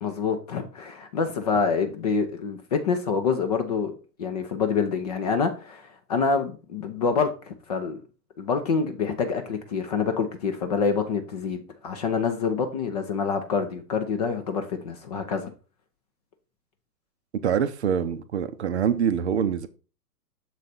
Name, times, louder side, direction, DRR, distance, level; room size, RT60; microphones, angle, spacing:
voice 1, 0.0-3.9 4.2-8.0 8.4-15.5, left 5 dB, 25° left, 0.5 m, -26 dB
voice 2, 17.4-19.7, right 8 dB, 45° right, 0.6 m, -25 dB
6.7 x 4.0 x 4.2 m
figure-of-eight pair, 120°, 49 cm